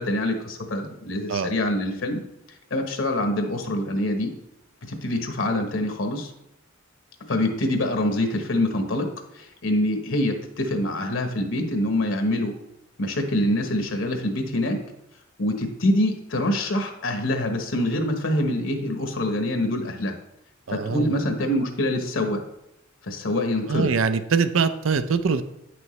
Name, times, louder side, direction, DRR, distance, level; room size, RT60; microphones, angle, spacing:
voice 1, 0.0-2.2 2.7-4.3 4.9-6.3 7.3-12.5 13.0-14.8 15.4-20.1 20.7-22.4 23.0-23.9, left 1 dB, 70° left, 4 dB, 1.1 m, -25 dB
voice 2, 20.7-21.2 23.7-25.4, right 5 dB, 75° right, 12 dB, 0.5 m, -23 dB
9.0 x 6.1 x 3.1 m, 0.84 s
head